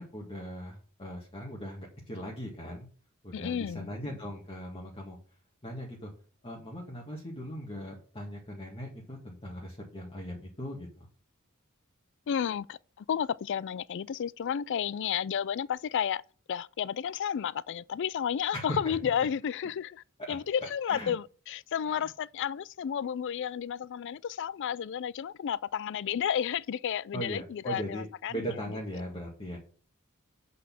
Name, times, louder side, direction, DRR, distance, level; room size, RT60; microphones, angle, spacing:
voice 1, 0.0-2.9 3.2-5.2 5.6-6.1 6.4-11.1 18.5-19.0 20.2-20.4 20.9-21.1 21.9-22.1 27.1-29.6, equal, 25° left, 1.8 m, -39 dB
voice 2, 3.3-3.9 12.3-12.8 13.1-16.2 16.5-28.8, left 8 dB, 55° left, 0.3 m, -32 dB
8.4 x 4.1 x 7.0 m
head